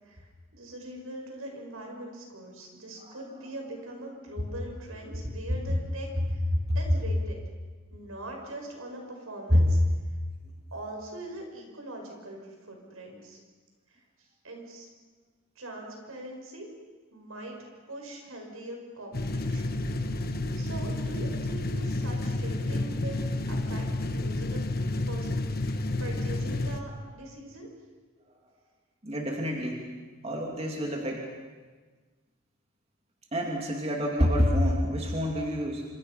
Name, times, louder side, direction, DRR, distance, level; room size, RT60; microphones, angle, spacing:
voice 1, 0.0-7.4 7.9-9.8 10.7-13.4 13.9-14.9 15.5-16.7 17.1-17.6 17.9-19.7 20.5-24.6 25.1-25.3 25.6-27.7, right 1 dB, 85° right, 1 dB, 6.5 m, -42 dB
sound 1, 19.1-26.8, left 2 dB, 45° left, 1.3 m, -30 dB
voice 2, 29.0-29.8 30.2-31.2 33.3-35.8, equal, 30° right, 0 dB, 2.6 m, -27 dB
27.0 x 26.5 x 5.7 m, 1.4 s
head